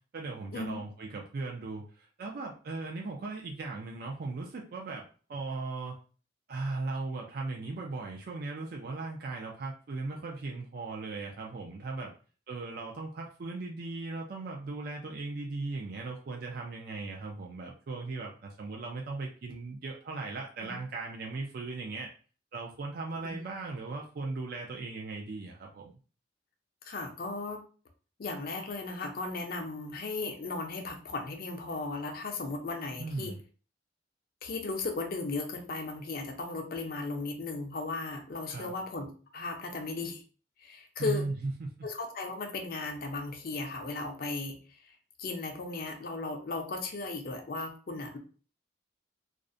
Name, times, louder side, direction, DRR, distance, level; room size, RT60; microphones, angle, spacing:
voice 1, 0.1-5.0 5.3-6.0 6.5-12.1 12.5-22.1 22.5-26.0 33.0-33.4 38.5-38.7 41.0-41.7, right 3 dB, 50° right, 0 dB, 0.4 m, -38 dB
voice 2, 26.8-27.6 28.2-33.3 34.4-40.2 40.6-41.2 41.8-44.6 44.8-44.9 45.2-48.2, left 3 dB, 50° left, 4 dB, 0.5 m, -36 dB
2.4 x 2.0 x 2.5 m, 0.38 s
head